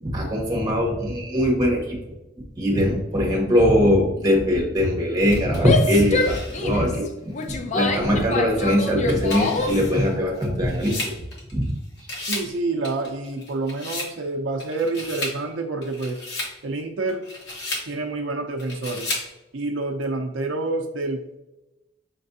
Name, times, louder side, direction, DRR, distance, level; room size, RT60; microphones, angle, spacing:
voice 1, 0.0-2.0 2.6-11.0 11.5-11.7, equal, 20° right, -2 dB, 1.2 m, -21 dB
sound 1, 5.3-6.9 7.4-7.5 8.7-11.7 12.0-12.5 12.8-14.1 14.6-15.4 15.8-16.6 17.1-17.9 18.6-19.3, left 2 dB, 60° left, 1.2 m, -34 dB
Female speech woman speaking / Yell, 5.5-9.9, left 3 dB, 35° left, 0.4 m, -26 dB
voice 2, 12.2-16.2 16.6-17.2 17.9-19.1 19.5-21.4, right 3 dB, 70° right, 3 dB, 0.5 m, -28 dB
5.9 x 3.3 x 2.7 m, 1.0 s
head